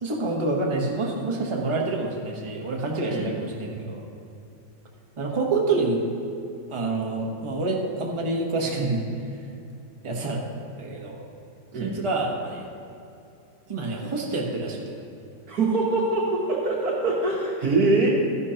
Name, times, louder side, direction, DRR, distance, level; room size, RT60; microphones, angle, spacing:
voice 1, 0.0-4.0 5.2-6.0 6.7-9.0 10.0-10.4 10.8-11.3 11.8-12.6 13.7-15.0, right 3 dB, 20° right, -1 dB, 0.9 m, -27 dB
voice 2, 15.5-18.1, right 3 dB, 55° right, -3 dB, 1.5 m, -23 dB
12.5 x 10.5 x 2.9 m, 2.7 s
omnidirectional pair, 2.1 m